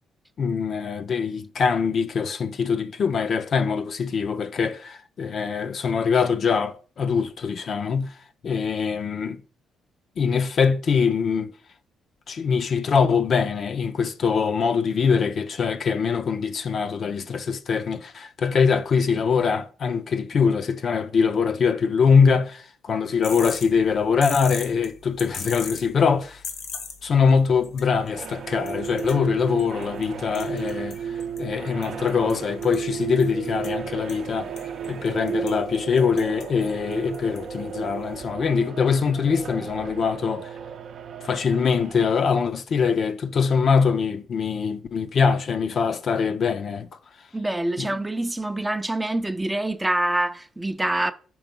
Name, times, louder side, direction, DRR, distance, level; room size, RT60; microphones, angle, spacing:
voice 1, 0.4-8.1 8.4-9.4 10.2-11.5 12.3-26.4 27.0-31.0 31.4-34.5 34.9-40.5 41.2-46.9 47.8-47.9, left 6 dB, 55° left, 0.5 m, -23 dB
sound 1, 23.2-38.3, left 5 dB, 80° left, 1.3 m, -42 dB
sound 2, 28.1-42.1, right 7 dB, 60° right, 0.5 m, -34 dB
voice 2, 47.3-51.1, right 1 dB, 10° right, 0.5 m, -25 dB
4.9 x 4.7 x 5.2 m
cardioid pair, 90°, 0 cm